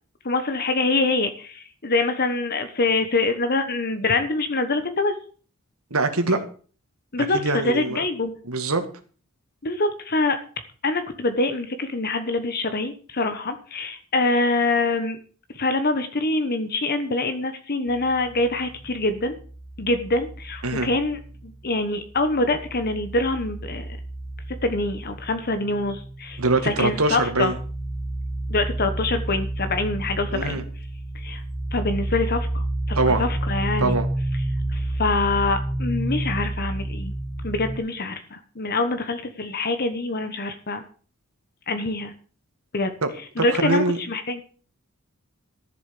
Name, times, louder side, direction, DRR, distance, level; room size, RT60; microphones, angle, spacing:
voice 1, 0.2-5.1 7.1-8.3 9.6-10.4 10.8-15.2 15.5-19.3 19.8-23.9 24.6-27.5 28.5-30.6 31.1-31.4 31.7-34.0 34.7-37.1 37.4-40.8 41.7-42.1 42.7-42.9 43.4-44.4, left 2 dB, 45° left, 9 dB, 1.2 m, -25 dB
voice 2, 5.9-6.4 7.3-8.0 8.4-8.8 20.6-20.9 26.4-27.5 30.3-30.6 33.0-33.2 33.8-34.1 43.0-43.1 43.4-44.0, right 3 dB, 75° right, 7 dB, 2.0 m, -23 dB
sound 1, 17.9-21.7 22.0-37.8, right 1 dB, 20° left, 2.0 m, -31 dB
13.5 x 7.5 x 6.6 m, 0.41 s
head